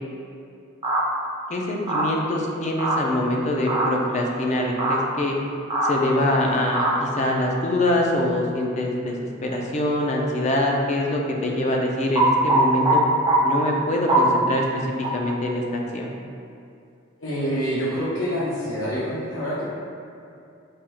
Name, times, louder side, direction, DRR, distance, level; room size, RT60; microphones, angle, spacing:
sound 1, 0.8-1.0 1.9-2.1 2.8-3.0 3.7-3.9 4.8-5.0 5.7-5.9 6.7-6.9 12.1-13.0 13.3-13.4 14.1-14.2 15.0-15.1, right 3 dB, 25° right, 0.5 m, -21 dB
voice 1, 1.5-5.4 5.8-13.0 13.4-14.6 15.1-16.1, left 1 dB, 35° left, 0 dB, 0.4 m, -24 dB
voice 2, 17.2-19.6, equal, 75° left, -9 dB, 1.0 m, -26 dB
4.8 x 2.3 x 2.9 m, 2.5 s
head